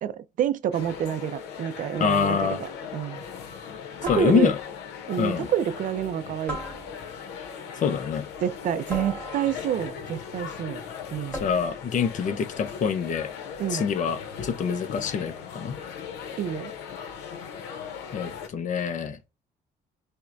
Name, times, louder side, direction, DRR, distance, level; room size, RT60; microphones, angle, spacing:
voice 1, 0.0-3.2 4.0-4.5 5.1-6.6 8.4-10.8 11.1-11.4 13.6-13.8 16.4-16.7, right 9 dB, 50° right, 0.4 m, -28 dB
sound 1, 0.7-18.5, left 7 dB, 85° left, 0.8 m, -39 dB
voice 2, 2.0-2.6 4.1-4.6 5.2-5.5 7.8-8.3 11.4-13.3 13.7-15.7 18.1-19.2, left 6 dB, 50° left, 0.6 m, -25 dB
sound 2, 4.0-4.8 6.5-7.3 8.9-9.8 11.3-11.9, equal, 5° left, 1.3 m, -37 dB
5.5 x 2.1 x 2.5 m
cardioid pair, 110°, 17 cm